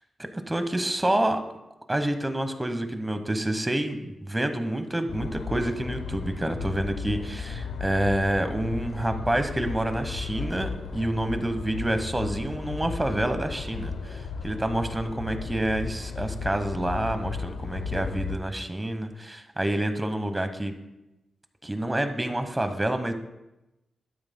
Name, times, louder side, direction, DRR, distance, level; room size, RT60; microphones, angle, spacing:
voice 1, 0.2-1.4 1.9-20.7 21.6-23.1, right 1 dB, 20° right, 8 dB, 1.1 m, -28 dB
sound 1, 5.1-18.4, left 5 dB, 90° left, 0.6 m, -35 dB
12.5 x 8.7 x 2.2 m, 0.95 s
cardioid pair, 55°, 0 cm